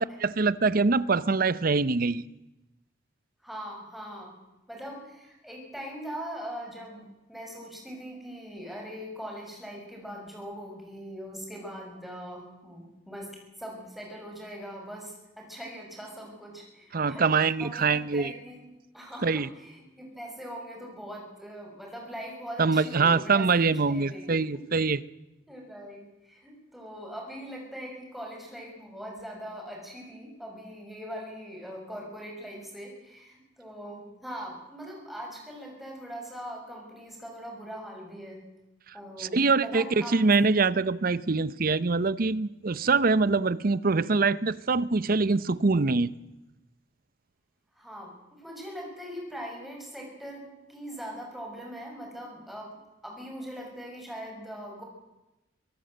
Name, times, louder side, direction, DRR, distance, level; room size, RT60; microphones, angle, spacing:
voice 1, 0.2-2.2 16.9-18.3 19.2-19.5 22.6-25.0 39.2-46.1, right 4 dB, 50° right, 0.7 m, -24 dB
voice 2, 3.4-4.4 4.7-13.3 13.6-17.3 17.6-18.6 18.9-24.6 25.5-38.4 38.9-40.3 47.7-52.8 53.0-54.8, equal, ahead, 6.4 m, -41 dB
24.0 x 17.5 x 7.9 m
head